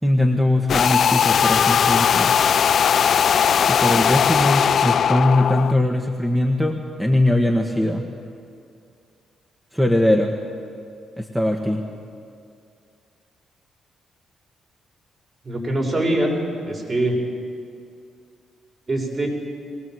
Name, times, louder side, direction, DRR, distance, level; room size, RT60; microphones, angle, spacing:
voice 1, 0.0-2.3 3.7-8.1 9.7-10.3 11.2-11.8, left 1 dB, 5° right, 2 dB, 1.7 m, -20 dB
sound 1, 0.7-5.7, left 8 dB, 60° left, 0.5 m, -18 dB
voice 2, 15.4-17.1 18.9-19.3, right 1 dB, 40° right, 0 dB, 6.3 m, -23 dB
22.5 x 18.5 x 8.0 m, 2.4 s
supercardioid pair, 70°, 0 cm